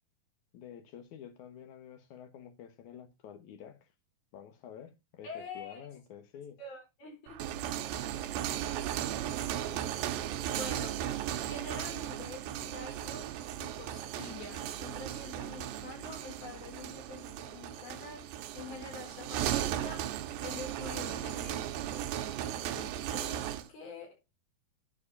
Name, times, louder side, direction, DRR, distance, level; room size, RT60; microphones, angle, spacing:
voice 1, 0.5-3.9 4.3-6.6 9.5-9.9, left 9 dB, 65° left, 2.3 m, -49 dB
voice 2, 5.2-5.9 6.6-7.4 10.5-11.0 11.4-13.3 13.6-22.1 22.5-24.2, left 4 dB, 90° left, 6.0 m, -46 dB
sound 1, 7.3-23.7, right 11 dB, 85° right, 2.6 m, -36 dB
10.0 x 4.9 x 4.2 m
omnidirectional pair, 4.2 m